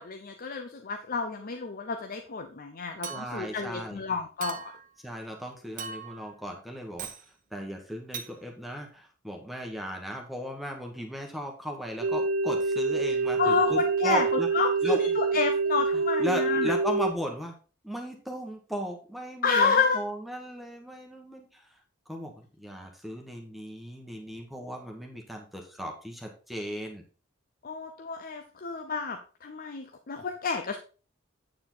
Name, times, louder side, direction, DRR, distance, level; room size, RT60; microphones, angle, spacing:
voice 1, 0.0-4.6 13.4-14.3 14.5-16.7 19.4-20.0 27.6-30.8, left 5 dB, 45° left, 5 dB, 0.8 m, -29 dB
Chink clink, 3.0-3.5 4.4-4.9 5.8-6.3 7.0-7.3 8.1-8.3, right 7 dB, 40° right, 1.0 m, -39 dB
voice 2, 3.1-4.0 5.0-7.1 7.5-14.5 14.8-15.2 15.9-17.5 17.8-21.7 22.1-27.0, equal, ahead, 1 dB, 1.3 m, -36 dB
sound 1, 12.0-17.1, right 4 dB, 80° right, 0.5 m, -26 dB
8.6 x 7.0 x 3.9 m, 0.36 s
head